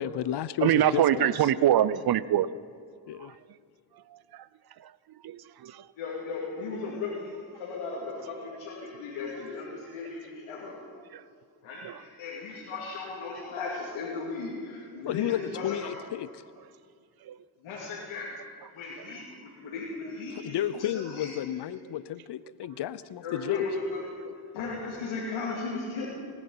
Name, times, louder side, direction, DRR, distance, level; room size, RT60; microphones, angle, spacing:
voice 1, 0.0-1.5 3.1-3.4 15.0-16.3 20.3-23.6, left 11 dB, 60° left, 17 dB, 0.7 m, -32 dB
voice 2, 0.6-2.5 5.2-5.7 11.8-11.9 17.3-17.4, right 11 dB, 50° right, 18 dB, 0.6 m, -23 dB
voice 3, 6.0-10.8 11.6-15.9 17.6-18.4 18.7-21.3 23.2-24.1 24.5-26.1, left 4 dB, 85° left, -5 dB, 2.7 m, -36 dB
18.5 x 10.0 x 5.6 m, 2.3 s
supercardioid pair, 65°, 47 cm